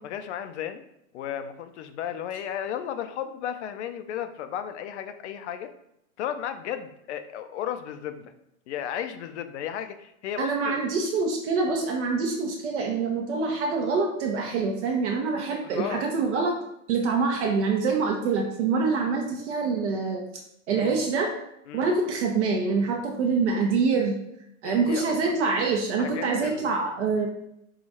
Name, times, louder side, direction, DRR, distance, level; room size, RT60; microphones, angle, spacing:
voice 1, 0.0-0.8 1.1-5.7 6.2-8.3 8.7-10.8 15.6-16.0 20.7-21.0 21.7-21.8 24.6-25.3 26.0-26.7, left 9 dB, 55° left, 10 dB, 0.5 m, -34 dB
voice 2, 10.4-16.6 16.9-20.2 20.7-21.3 21.7-24.2 24.6-27.3, right 4 dB, 55° right, 1 dB, 0.8 m, -25 dB
4.8 x 2.3 x 4.1 m, 0.80 s
hypercardioid pair, 145°, 41 cm